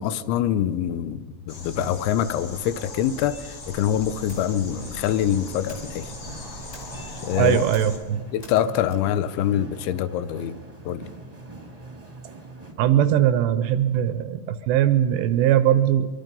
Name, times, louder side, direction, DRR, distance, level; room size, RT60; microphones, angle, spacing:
voice 1, 0.0-6.1 7.2-7.6 8.3-10.6 10.9-11.1, left 11 dB, 80° left, 3.0 m, -25 dB
sound 1, 1.5-8.0, left 1 dB, 35° left, 2.7 m, -38 dB
sound 2, 4.2-12.7, right 2 dB, 15° right, 1.5 m, -42 dB
sound 3, 4.3-10.3, left 1 dB, 20° left, 2.5 m, -52 dB
voice 2, 7.3-8.2 12.8-16.1, right 10 dB, 80° right, 2.6 m, -20 dB
24.0 x 23.5 x 5.4 m
omnidirectional pair, 5.5 m